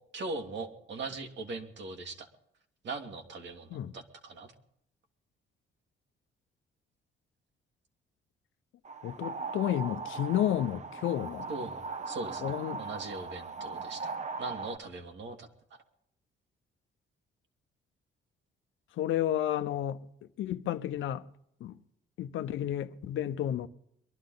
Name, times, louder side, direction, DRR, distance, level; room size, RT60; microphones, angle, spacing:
voice 1, 0.1-2.3 2.8-4.5 11.5-12.4 12.8-14.1 14.4-15.8, right 3 dB, 65° right, 2.4 m, -40 dB
sound 1, 8.8-14.8, right 4 dB, 35° right, 1.1 m, -39 dB
voice 2, 9.0-11.5 12.4-12.8 18.9-20.1 20.4-21.3 21.6-21.8 22.2-23.7, left 11 dB, 75° left, 0.9 m, -31 dB
23.0 x 12.0 x 4.0 m
cardioid pair, 90°, 20 cm